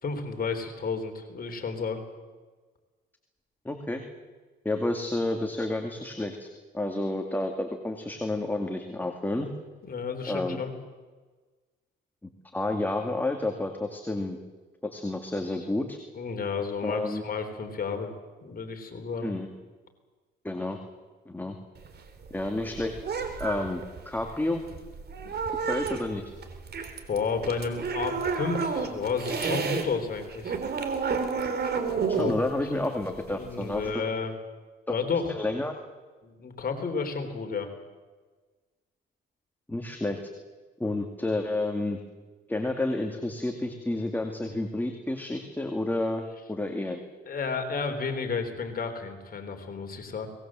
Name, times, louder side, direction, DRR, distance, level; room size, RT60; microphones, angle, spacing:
voice 1, 0.0-2.0 9.9-10.7 16.2-18.1 18.4-19.3 25.2-25.6 27.1-30.6 32.1-32.3 33.3-34.3 34.9-35.3 36.2-37.7 47.3-50.3, left 5 dB, 45° left, 5 dB, 3.8 m, -32 dB
voice 2, 3.6-4.0 4.6-6.5 6.7-9.5 10.3-10.6 12.5-14.4 14.8-16.0 16.8-17.2 19.2-19.5 20.4-20.8 21.3-21.6 22.3-22.9 23.4-24.6 25.7-26.3 32.1-34.1 35.3-35.7 39.7-40.2 40.8-42.0 42.5-47.0, left 2 dB, 10° left, 4 dB, 2.3 m, -30 dB
sound 1, 21.8-29.9 30.2-33.9, right 5 dB, 55° right, 3.4 m, -31 dB
24.0 x 19.5 x 7.6 m, 1.3 s
cardioid pair, 90°, 20 cm